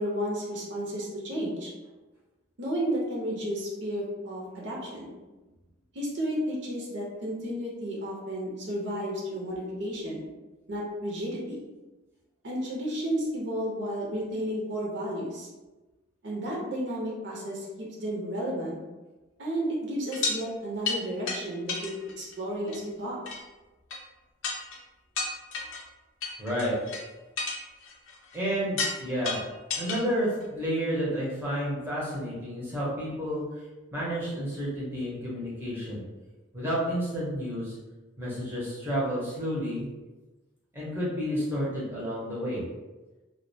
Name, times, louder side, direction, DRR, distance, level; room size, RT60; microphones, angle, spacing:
voice 1, 0.0-1.7 2.6-5.2 5.9-10.2 10.7-11.7 12.4-15.5 16.2-18.8 19.4-23.2, equal, 60° right, -4 dB, 0.6 m, -32 dB
sound 1, 20.1-20.4 20.8-21.0 21.3-21.4 21.7-22.3 22.7-22.8 23.3-23.4 23.9-24.0 24.4-24.8 25.2-25.8 26.2-27.0 27.4-28.4 28.8-29.0 29.2-30.0 30.4-30.5, left 4 dB, 75° left, 0.5 m, -31 dB
voice 2, 26.4-26.7 28.3-29.4 29.8-33.5 33.9-36.0 36.5-37.8 38.2-39.9 40.7-42.7, equal, 10° right, -7 dB, 0.6 m, -30 dB
2.2 x 2.1 x 2.6 m, 1.1 s
head